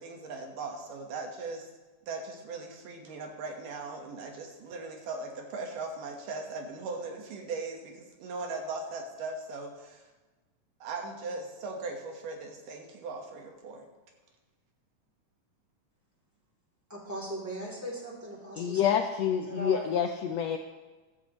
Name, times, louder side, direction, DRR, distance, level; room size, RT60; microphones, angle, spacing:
voice 1, 0.0-1.7 2.1-10.1 10.8-13.9, right 3 dB, 85° right, 3 dB, 3.1 m, -39 dB
voice 2, 16.9-19.0 19.4-19.9, right 1 dB, 5° right, -4 dB, 2.5 m, -39 dB
voice 3, 18.6-20.6, left 8 dB, 90° left, 4 dB, 1.5 m, -27 dB
15.0 x 13.0 x 3.1 m, 1.2 s
omnidirectional pair, 3.7 m